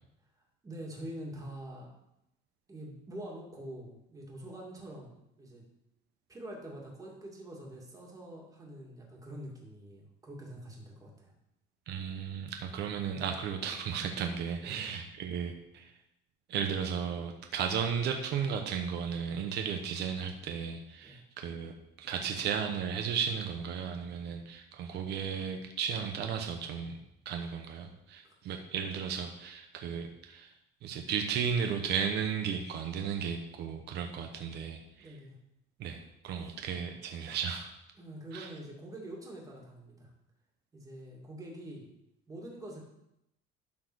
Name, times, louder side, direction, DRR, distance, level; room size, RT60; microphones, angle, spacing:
voice 1, 0.6-1.9 2.7-5.6 6.3-11.3 14.6-14.9 21.0-21.2 35.0-35.3 36.4-36.5 38.0-40.1 40.7-41.9 42.3-42.8, right 1 dB, 15° right, -2 dB, 2.5 m, -45 dB
voice 2, 11.9-15.9 16.5-27.0 27.2-30.5 30.8-35.1 35.8-37.7 38.3-38.5, right 7 dB, 55° right, 4 dB, 1.1 m, -35 dB
12.0 x 4.7 x 6.3 m, 0.86 s
cardioid pair, 165°, 21 cm